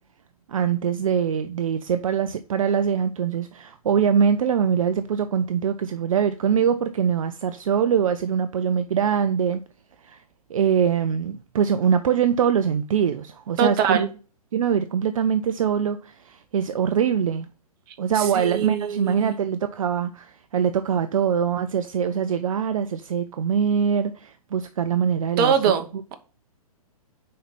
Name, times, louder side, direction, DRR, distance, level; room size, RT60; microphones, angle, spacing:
voice 1, 0.5-9.6 10.0-10.2 10.5-14.0 14.5-17.5 18.0-25.6, right 7 dB, 60° right, 0.5 m, -23 dB
voice 2, 13.6-14.1 18.1-19.3 25.4-26.1, right 7 dB, 35° right, 1.0 m, -23 dB
5.6 x 4.3 x 5.4 m
figure-of-eight pair, 120°, 19 cm